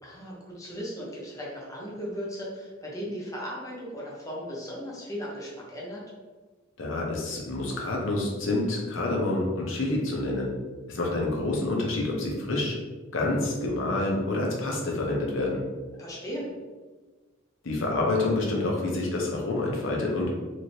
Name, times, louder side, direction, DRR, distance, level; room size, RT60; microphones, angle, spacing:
voice 1, 0.0-6.0 16.0-16.5, equal, 15° left, -4 dB, 0.6 m, -37 dB
voice 2, 6.8-10.5 10.9-12.8 13.1-15.6 17.6-20.3, left 2 dB, 65° left, -1 dB, 0.7 m, -27 dB
3.2 x 2.7 x 2.7 m, 1.3 s
head